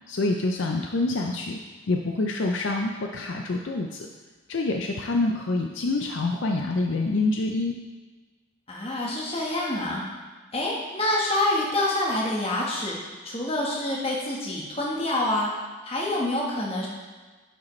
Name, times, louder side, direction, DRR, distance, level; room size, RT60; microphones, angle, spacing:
voice 1, 0.1-1.6 1.9-4.1 4.5-7.7, left 2 dB, 65° left, 2 dB, 0.5 m, -26 dB
voice 2, 8.7-10.0 10.5-13.0 13.2-15.5 15.8-16.9, left 1 dB, 25° left, -3 dB, 1.3 m, -26 dB
9.8 x 4.9 x 3.2 m, 1.4 s
head